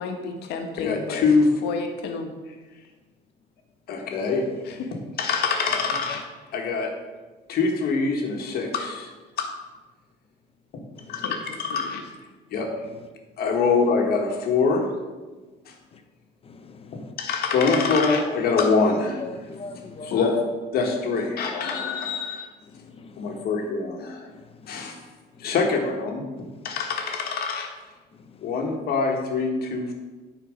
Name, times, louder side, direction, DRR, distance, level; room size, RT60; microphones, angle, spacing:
voice 1, 0.0-1.2 1.6-2.3 4.6-4.9 11.2-11.3 11.7-12.0 20.1-20.4, left 4 dB, 85° left, 1.3 m, -32 dB
voice 2, 0.8-1.5 3.9-6.3 6.5-6.9 7.5-9.1 9.4-9.5 10.7-10.8 11.1-12.0 12.5-12.7 13.4-14.9 15.7-15.8 16.9-19.2 20.0-20.3 20.7-22.5 23.2-24.3 24.7-25.0 25.4-27.7 28.4-29.9, left 4 dB, 65° left, 1.5 m, -24 dB
voice 3, 16.4-17.1 19.2-20.2 22.7-23.4 24.3-24.9 25.4-25.5 26.6-26.7 28.3-28.5, left 4 dB, 35° left, 0.8 m, -42 dB
9.7 x 4.4 x 5.1 m
cardioid pair, 110°, 17 cm